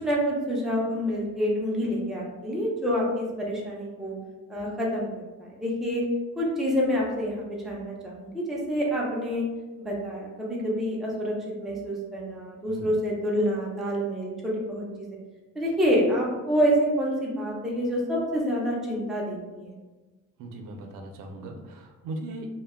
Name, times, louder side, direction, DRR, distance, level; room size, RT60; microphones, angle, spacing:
voice 1, 0.0-4.1 4.5-6.0 6.4-9.4 9.8-15.1 15.6-19.7, equal, ahead, -4 dB, 0.4 m, -27 dB
voice 2, 20.4-22.5, right 2 dB, 90° right, 3 dB, 0.5 m, -38 dB
2.2 x 2.1 x 3.4 m, 1.2 s
cardioid pair, 160°, 32 cm